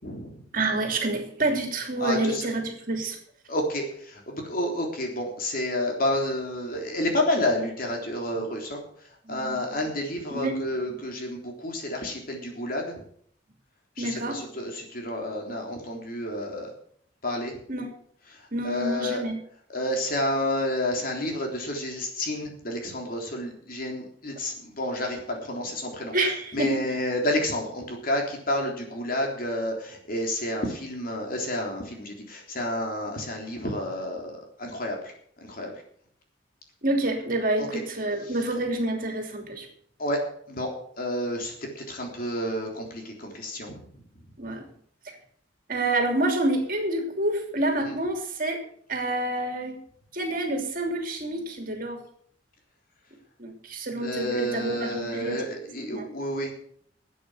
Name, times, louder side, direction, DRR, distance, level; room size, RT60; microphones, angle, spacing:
voice 1, 0.0-0.4 2.0-2.5 3.5-8.8 9.3-13.0 14.0-16.7 17.2-17.5 18.6-19.2 19.7-26.1 26.5-35.0 35.4-35.7 37.6-37.8 40.0-40.2 40.5-40.7 41.0-43.8 47.8-48.0 54.0-56.5, left 1 dB, 50° left, 1 dB, 3.6 m, -30 dB
voice 2, 0.5-3.2 8.3-8.5 9.2-9.8 10.3-10.6 10.9-11.0 14.0-14.5 17.7-17.9 18.5-19.4 26.1-27.0 34.6-34.7 36.8-39.7 44.4-44.7 45.7-48.6 48.9-49.8 50.1-52.0 53.4-55.4 55.9-56.1, right 2 dB, 50° right, 4 dB, 3.0 m, -28 dB
12.5 x 8.4 x 8.0 m, 0.63 s
head